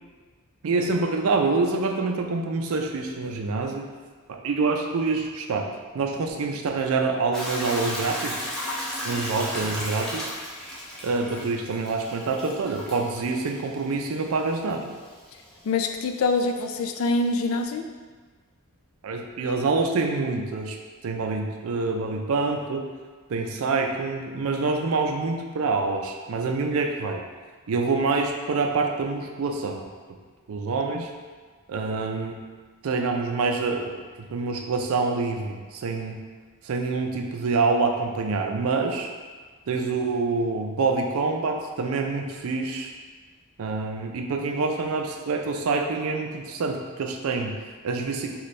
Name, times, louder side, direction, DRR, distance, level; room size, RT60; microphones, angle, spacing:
voice 1, 0.6-3.9 4.3-8.5 9.0-10.3 11.0-14.9 19.0-20.8 21.0-22.9 23.3-27.2 27.7-29.8 30.1-30.2 30.5-31.1 31.7-32.4 32.8-36.2 36.6-39.1 39.7-42.9 43.6-48.4, right 3 dB, 70° right, 3 dB, 0.4 m, -26 dB
Hiss / Toilet flush / Trickle dribble, 7.3-17.6, equal, 5° left, 0.5 m, -36 dB
voice 2, 15.6-17.8 30.9-31.1, left 3 dB, 70° left, 6 dB, 0.3 m, -25 dB
3.1 x 2.3 x 4.1 m, 1.5 s
head